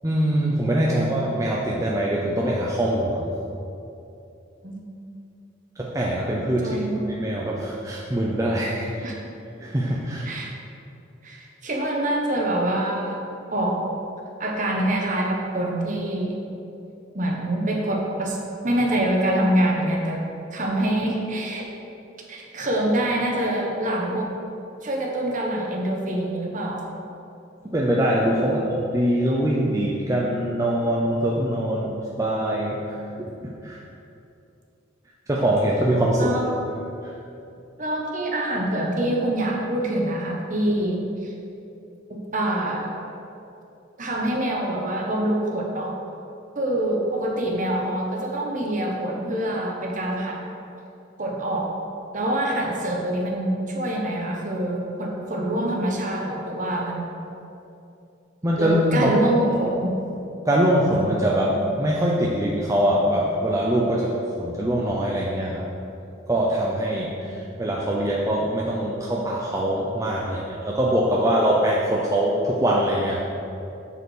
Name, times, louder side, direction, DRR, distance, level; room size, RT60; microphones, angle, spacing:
voice 1, 0.0-3.2 5.8-6.8 7.1-9.1 9.6-10.3 27.6-33.8 35.3-36.3 58.4-59.1 60.5-65.7 66.3-73.2, right 1 dB, 15° right, -4 dB, 0.6 m, -23 dB
voice 2, 6.6-7.2 9.0-9.1 10.2-10.5 11.2-13.2 13.5-13.8 14.4-16.4 17.1-18.4 18.6-20.2 20.5-21.7 22.3-24.3 24.8-26.8 28.4-28.6 36.2-36.6 37.8-41.0 41.2-41.3 42.1-42.9 44.0-45.9 46.5-50.4 51.2-51.7 52.1-57.1 58.6-60.0, right 1 dB, 40° right, -1 dB, 1.2 m, -25 dB
7.9 x 4.8 x 6.4 m, 2.8 s
head